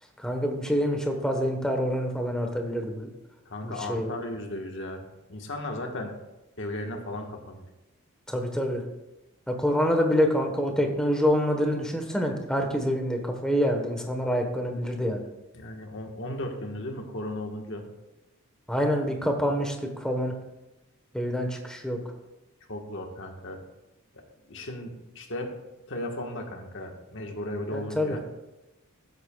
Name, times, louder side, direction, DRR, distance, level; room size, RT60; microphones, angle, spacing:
voice 1, 0.2-3.1 3.6-4.1 8.3-8.8 9.5-15.2 18.7-20.4 21.1-22.0 27.7-28.2, equal, 5° left, 3 dB, 1.1 m, -26 dB
voice 2, 3.5-5.0 5.3-6.1 6.6-7.6 15.5-17.8 22.7-23.6 24.5-25.5 25.9-28.2, left 1 dB, 55° left, 3 dB, 1.3 m, -35 dB
16.0 x 8.1 x 2.3 m, 0.98 s
head